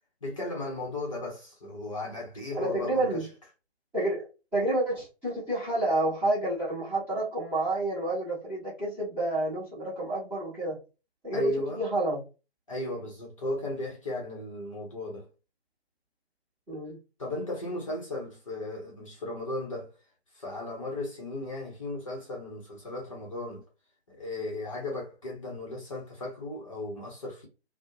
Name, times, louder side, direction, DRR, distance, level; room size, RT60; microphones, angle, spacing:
voice 1, 0.2-3.3 11.3-11.8 12.7-15.3 17.2-19.9 20.3-23.6 24.1-27.5, left 1 dB, 30° left, 0.8 m, -35 dB
voice 2, 2.5-3.2 3.9-4.3 4.5-10.8 11.2-12.2 16.7-17.0, right 1 dB, 5° right, 0.9 m, -29 dB
2.6 x 2.1 x 2.6 m
figure-of-eight pair, 145°, 32 cm